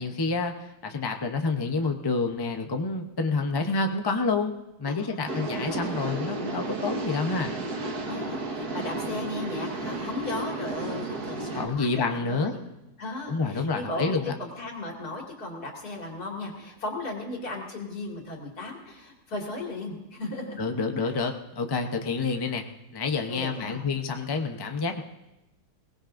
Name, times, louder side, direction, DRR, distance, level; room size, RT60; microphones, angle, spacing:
voice 1, 0.0-4.5 4.8-7.5 11.6-12.5 13.3-14.3 20.6-22.6 22.9-25.0, left 4 dB, 30° left, 4 dB, 0.4 m, -28 dB
voice 2, 4.9-5.5 8.0-12.6 13.0-20.6 21.0-21.1 21.9-22.0 23.3-23.8, left 2 dB, 65° left, 0 dB, 2.8 m, -36 dB
sound 1, 5.3-11.6, right 2 dB, 70° right, 1.9 m, -33 dB
22.0 x 18.5 x 2.6 m, 0.94 s
omnidirectional pair, 1.7 m